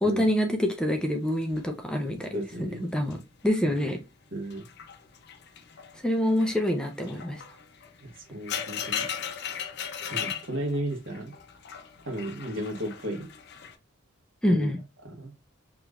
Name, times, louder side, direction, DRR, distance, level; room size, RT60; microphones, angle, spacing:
voice 1, 0.0-3.2 3.4-4.0 6.0-7.4 14.4-14.8, left 1 dB, 5° left, 0.5 m, -26 dB
sound 1, 0.9-3.3 3.6-4.0 4.4-13.7, left 8 dB, 55° left, 0.6 m, -38 dB
voice 2, 2.3-2.9 4.3-4.7 8.0-9.1 10.0-11.3 12.0-13.3 14.5-14.7 15.0-15.3, right 1 dB, 65° right, 1.4 m, -34 dB
4.9 x 3.0 x 2.3 m
head